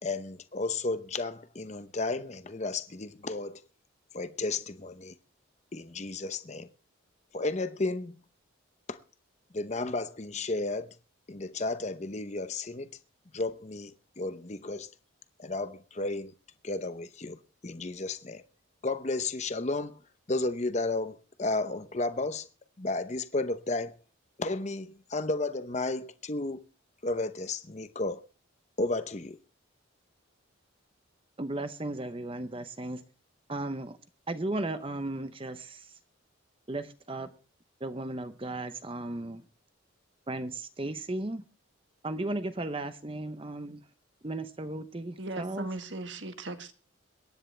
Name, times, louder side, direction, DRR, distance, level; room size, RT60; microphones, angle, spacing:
voice 1, 0.0-3.6 4.1-5.1 5.7-6.7 7.3-8.2 8.9-9.0 9.5-11.0 11.3-12.9 13.3-14.9 15.4-16.3 16.6-18.4 18.8-20.0 20.3-22.5 22.8-23.9 24.4-26.6 27.0-28.2 28.8-29.4, left 2 dB, 35° left, 0.8 m, -33 dB
voice 2, 31.4-33.0 33.5-34.0 34.3-35.9 36.7-37.3 37.8-39.4 40.3-41.4 42.0-43.8 44.2-45.7, right 2 dB, 25° right, 0.8 m, -35 dB
voice 3, 45.2-46.7, right 2 dB, 60° right, 1.6 m, -38 dB
22.5 x 10.5 x 3.3 m
head